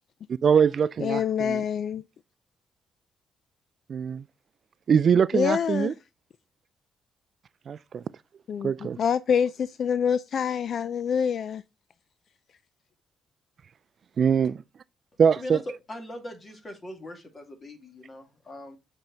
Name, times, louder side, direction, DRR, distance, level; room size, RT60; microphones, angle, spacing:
voice 1, 0.3-1.6 3.9-4.2 4.9-5.9 7.7-8.0 8.6-9.0 14.2-14.6 15.2-15.6, right 7 dB, 50° right, 0.3 m, -23 dB
voice 2, 1.0-2.0 5.3-5.9 8.5-11.6, left 7 dB, 60° left, 0.3 m, -26 dB
voice 3, 15.9-18.8, left 1 dB, 30° left, 2.2 m, -41 dB
7.3 x 4.5 x 3.9 m
cardioid pair, 90°, 0 cm